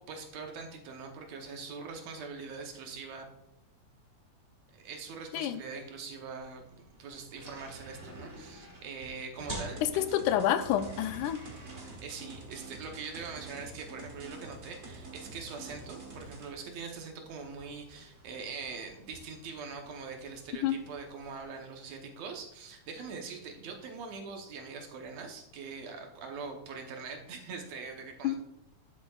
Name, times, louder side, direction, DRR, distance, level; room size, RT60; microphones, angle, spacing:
voice 1, 0.0-3.2 4.7-9.8 11.8-28.4, right 5 dB, 70° right, 3 dB, 2.0 m, -43 dB
sound 1, 6.4-21.4, right 1 dB, 25° right, 1.5 m, -50 dB
sound 2, 9.7-16.5, right 3 dB, 90° right, 0.6 m, -47 dB
voice 2, 9.9-11.4 20.6-20.8 28.2-28.4, left 11 dB, 90° left, 11 dB, 2.1 m, -28 dB
11.5 x 6.8 x 2.3 m, 0.79 s
omnidirectional pair, 3.5 m